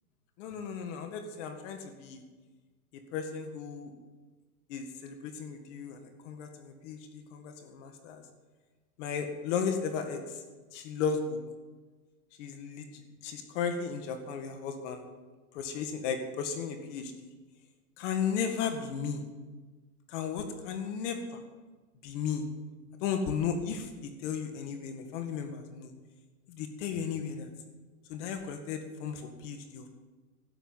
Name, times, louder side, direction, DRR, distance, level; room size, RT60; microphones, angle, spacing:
voice 1, 0.4-2.2 2.9-3.9 4.7-8.2 9.0-10.4 10.7-11.4 12.4-15.0 15.5-17.3 18.0-19.2 20.1-21.2 22.0-22.5 23.0-25.9 26.5-27.5 28.1-29.9, left 6 dB, 50° left, 6 dB, 2.0 m, -35 dB
13.0 x 9.8 x 8.0 m, 1.3 s
hypercardioid pair, 120°, 45 cm